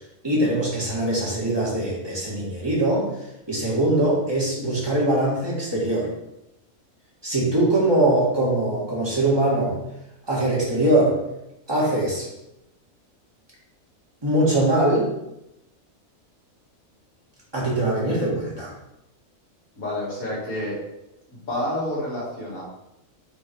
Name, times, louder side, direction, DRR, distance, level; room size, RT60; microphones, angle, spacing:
voice 1, 0.2-3.1 3.5-6.1 7.2-9.8 10.3-11.2 11.7-12.3 14.2-15.1 17.5-18.7, right 1 dB, 15° right, -6 dB, 2.1 m, -22 dB
voice 2, 19.8-20.8 21.3-22.6, left 1 dB, 75° left, -7 dB, 2.9 m, -29 dB
5.6 x 4.2 x 4.6 m, 0.87 s
omnidirectional pair, 1.5 m